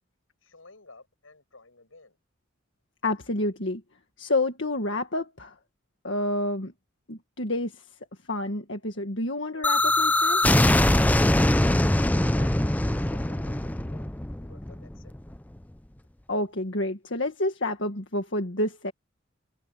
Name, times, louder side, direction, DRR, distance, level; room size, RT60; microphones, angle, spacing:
voice 1, 0.4-2.2 11.1-15.4, left 3 dB, 85° left, 7.0 m, -53 dB
voice 2, 3.0-3.8 4.2-5.5 6.0-6.7 7.1-7.8 8.3-10.4 16.3-18.9, left 1 dB, 60° left, 1.9 m, -29 dB
sound 1, 9.6-15.4, left 1 dB, 10° left, 0.5 m, -22 dB
sound 2, 9.8-14.7, equal, 50° right, 6.7 m, -51 dB
head